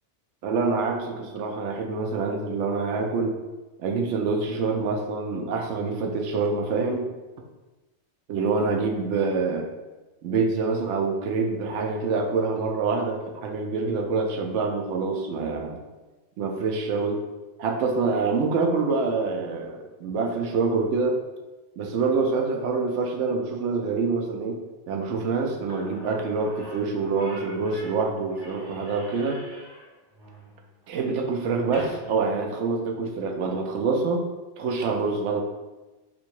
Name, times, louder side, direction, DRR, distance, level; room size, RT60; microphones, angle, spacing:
voice 1, 0.4-3.3 3.8-7.1 8.3-9.6 10.2-15.8 16.4-17.2 17.6-21.2 21.8-24.6 24.9-29.4 30.9-34.2 34.6-35.4, right 4 dB, 80° right, 2 dB, 0.9 m, -26 dB
Slam / Squeak, 25.7-33.2, equal, 25° right, 0.7 m, -45 dB
2.7 x 2.7 x 4.4 m, 1.2 s
omnidirectional pair, 1.2 m